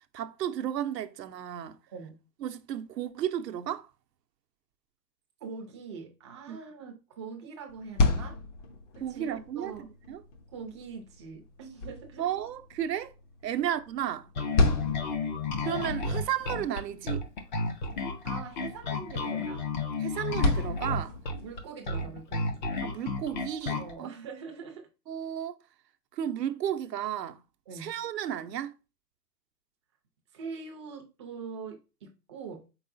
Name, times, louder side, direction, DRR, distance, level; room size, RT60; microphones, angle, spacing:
voice 1, 0.1-1.8 2.4-3.9 6.5-6.6 9.0-9.7 10.1-10.2 12.2-13.1 13.4-14.3 15.6-17.2 20.0-21.2 22.8-24.1 25.1-25.6 26.1-27.4 27.7-28.7, right 10 dB, 75° right, 0.7 m, -33 dB
voice 2, 5.4-8.4 8.9-9.3 9.5-9.9 10.5-12.3 14.5-15.0 18.2-19.6 21.4-22.6 23.8-24.9 27.7-28.0 30.3-32.7, right 5 dB, 20° right, 0.5 m, -43 dB
sound 1, 7.7-21.6, left 3 dB, 45° left, 0.9 m, -33 dB
Bass guitar, 14.4-23.9, left 3 dB, 30° left, 0.5 m, -32 dB
4.8 x 3.9 x 2.5 m
hypercardioid pair, 140°, 50 cm